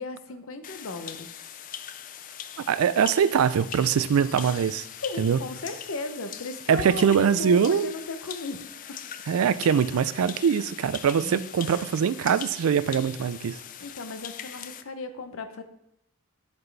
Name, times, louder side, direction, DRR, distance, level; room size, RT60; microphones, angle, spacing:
voice 1, 0.0-1.6 5.0-9.0 11.2-11.5 13.8-15.6, left 3 dB, 65° left, 0.7 m, -36 dB
sound 1, 0.6-14.8, left 9 dB, 40° left, 0.3 m, -41 dB
voice 2, 2.7-4.8 5.2-5.4 6.7-7.9 9.3-13.6, right 7 dB, 75° right, 0.3 m, -23 dB
11.0 x 4.2 x 3.3 m
head